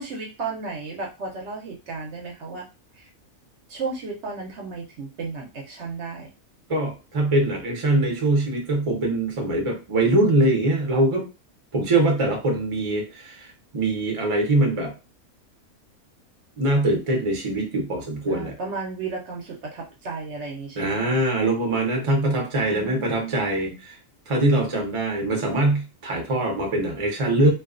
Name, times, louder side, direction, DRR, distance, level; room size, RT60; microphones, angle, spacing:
voice 1, 0.0-2.6 2.9-3.1 3.7-6.3 18.3-21.2 22.6-23.8, right 4 dB, 65° right, 0 dB, 0.8 m, -34 dB
voice 2, 6.7-11.3 11.7-14.9 16.6-18.5 20.8-24.0 24.3-27.5, right 2 dB, 40° right, 2 dB, 0.4 m, -23 dB
2.3 x 2.3 x 2.4 m, 0.29 s
omnidirectional pair, 1.5 m